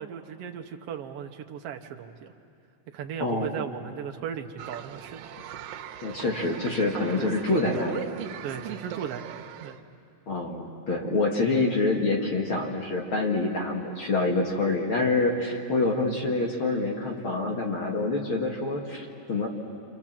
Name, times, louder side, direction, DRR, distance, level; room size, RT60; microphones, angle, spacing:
voice 1, 0.0-2.3 2.9-5.3 7.2-7.3 8.4-9.8, right 8 dB, 65° right, 5 dB, 1.6 m, -37 dB
voice 2, 3.2-3.5 6.0-8.1 10.3-19.5, left 3 dB, 45° left, 0 dB, 2.1 m, -26 dB
sound 1, 4.6-9.8, right 10 dB, 90° right, 2.6 m, -39 dB
28.0 x 27.0 x 7.4 m, 2.5 s
omnidirectional pair, 3.9 m